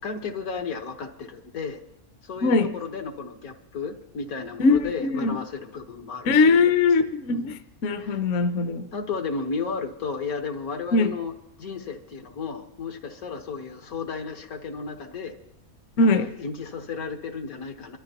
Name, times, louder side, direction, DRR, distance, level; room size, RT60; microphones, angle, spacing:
voice 1, 0.0-1.8 2.2-6.6 7.3-7.6 8.0-8.2 8.9-11.3 11.6-15.3 16.0-18.0, left 5 dB, 80° left, 1.7 m, -33 dB
voice 2, 2.4-2.7 4.6-5.4 6.3-7.5 7.8-8.9 10.9-11.1 16.0-16.3, left 3 dB, 65° left, 1.0 m, -21 dB
24.5 x 13.5 x 2.9 m
omnidirectional pair, 1.5 m